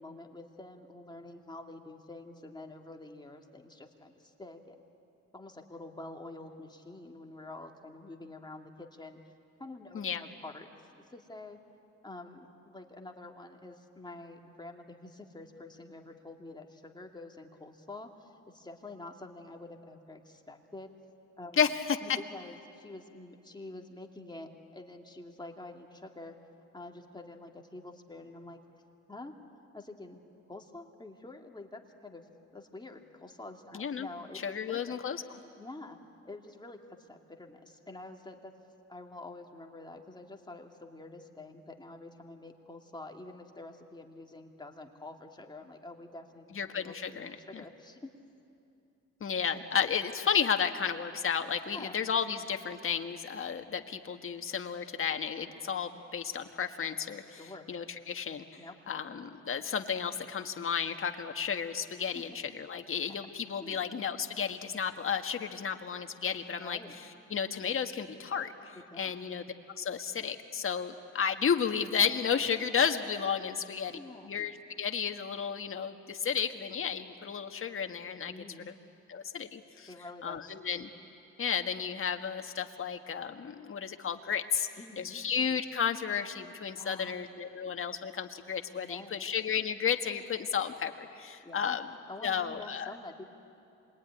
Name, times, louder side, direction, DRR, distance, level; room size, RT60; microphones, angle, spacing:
voice 1, 0.0-4.8 5.3-9.2 9.6-10.7 11.1-11.6 12.0-20.9 21.4-21.8 22.0-26.3 26.7-28.6 29.1-29.4 29.7-30.2 30.5-32.3 32.5-35.0 35.6-36.0 36.2-38.5 38.9-48.1 51.6-52.0 57.4-57.7 58.5-58.7 62.1-62.4 62.9-63.0 63.6-63.8 66.5-67.0 68.9-69.1 73.5-73.6 73.9-74.3 78.3-78.7 79.9-80.6 84.8-85.2 86.7-87.2 88.8-89.2 91.4-91.8 92.1-93.2, left 2 dB, 15° left, 2 dB, 2.4 m, -47 dB
voice 2, 21.6-22.2 33.7-34.1 34.4-35.2 46.5-47.3 49.2-57.4 57.7-58.5 58.9-66.8 67.3-69.5 69.8-74.0 74.3-78.3 78.7-78.8 79.1-79.9 80.2-80.9 81.4-84.7 85.0-91.8 92.2-92.9, left 7 dB, 45° left, 6 dB, 1.6 m, -32 dB
26.5 x 21.5 x 9.9 m, 2.7 s
cardioid pair, 90°, 30 cm